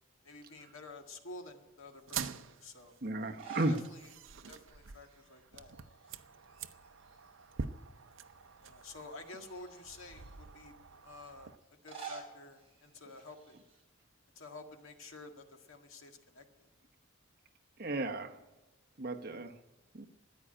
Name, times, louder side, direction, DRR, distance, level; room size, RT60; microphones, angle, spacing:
voice 1, 0.2-3.0 3.5-4.1 4.5-5.8 6.1-6.2 8.6-10.7 11.0-11.5 11.8-13.6 14.4-16.7, left 2 dB, 80° left, 5 dB, 1.8 m, -51 dB
sound 1, 2.0-11.6, right 6 dB, 70° right, 0.7 m, -46 dB
voice 2, 3.0-3.8 17.8-18.4 19.0-19.6 19.9-20.1, right 2 dB, 45° right, 5 dB, 1.1 m, -34 dB
sound 2, 3.2-3.9 4.2-4.3 5.7-6.2 6.5-7.6 8.2-8.3 9.2-10.3 11.6-13.8, right 6 dB, 30° right, 4.5 m, -49 dB
13.5 x 9.9 x 8.9 m, 1.1 s
head